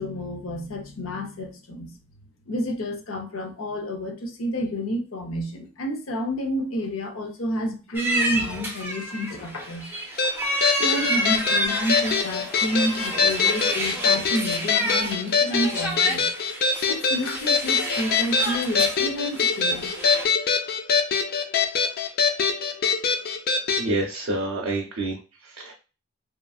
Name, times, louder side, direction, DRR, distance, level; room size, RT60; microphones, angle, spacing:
voice 1, 0.0-1.9 2.5-9.9 10.8-16.3 16.8-19.9, equal, 85° left, 0.7 m, -30 dB
sound 1, 7.9-20.2, right 1 dB, 10° right, 0.6 m, -30 dB
sound 2, 10.2-23.9, left 5 dB, 50° left, 0.4 m, -23 dB
voice 2, 23.8-25.2 25.4-25.7, right 2 dB, 65° right, 0.5 m, -27 dB
2.9 x 2.5 x 2.3 m
head